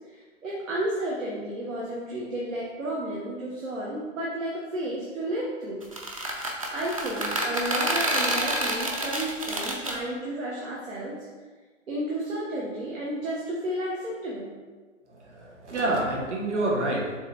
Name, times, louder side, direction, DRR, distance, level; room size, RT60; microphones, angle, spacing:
voice 1, 0.1-5.9 6.4-11.3 11.9-14.5, right 1 dB, 80° right, -5 dB, 1.6 m, -32 dB
sound 1, 5.8-10.0, right 1 dB, 30° right, 0.5 m, -28 dB
voice 2, 15.1-17.2, right 2 dB, 65° right, -4 dB, 1.9 m, -28 dB
6.9 x 3.3 x 4.3 m, 1.3 s
hypercardioid pair, 170°, 38 cm